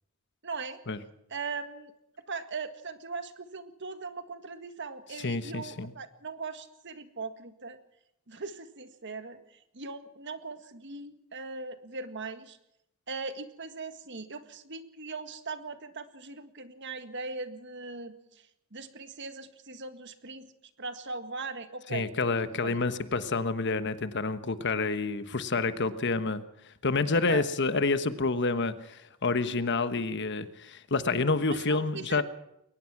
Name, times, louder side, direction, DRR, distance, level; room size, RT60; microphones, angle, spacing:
voice 1, 0.4-0.8 1.3-1.9 2.3-7.8 8.3-9.4 9.7-12.6 13.1-18.1 18.7-20.5 20.8-22.1 22.6-22.8 27.3-27.4 31.5-32.2, right 4 dB, 55° right, 9 dB, 1.8 m, -39 dB
voice 2, 5.2-5.9 21.9-32.2, left 3 dB, 55° left, 12 dB, 1.2 m, -28 dB
22.0 x 19.5 x 6.0 m, 0.81 s
head